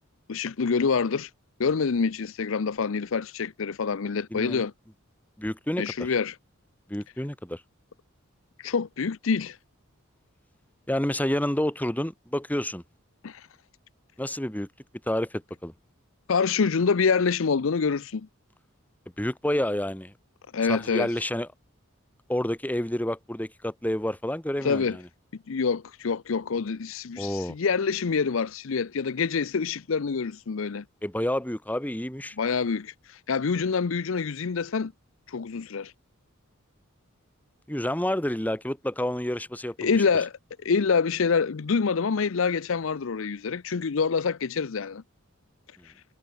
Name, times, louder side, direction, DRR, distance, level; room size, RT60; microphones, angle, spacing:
voice 1, 0.3-1.3 1.6-4.7 5.8-6.3 8.6-9.6 13.2-13.4 16.3-18.3 20.5-21.1 24.6-25.0 25.5-30.8 32.4-34.9 35.3-35.9 39.8-40.3 40.6-45.0, left 5 dB, 65° left, 0.6 m, -26 dB
voice 2, 4.3-4.6 5.4-6.1 6.9-7.6 10.9-12.8 14.2-14.7 15.1-15.7 19.2-20.1 20.7-21.5 22.3-25.0 27.2-27.5 31.0-32.4 37.7-40.0 45.8-45.9, left 1 dB, 10° left, 1.2 m, -29 dB
head